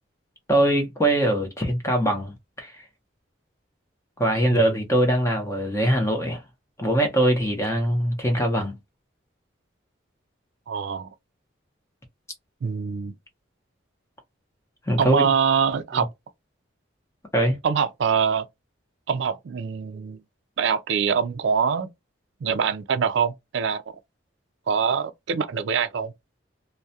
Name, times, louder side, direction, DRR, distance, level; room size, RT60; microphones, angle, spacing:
voice 1, 0.5-2.7 4.2-6.4 6.8-8.7 14.9-15.3 17.3-17.6, right 1 dB, 15° left, 0.7 m, -22 dB
voice 2, 10.7-11.1 12.6-13.1 15.0-16.1 17.6-18.5 19.1-20.2 20.6-21.9 22.4-23.8 24.7-26.1, right 6 dB, 70° right, 0.4 m, -24 dB
2.3 x 2.1 x 2.6 m
head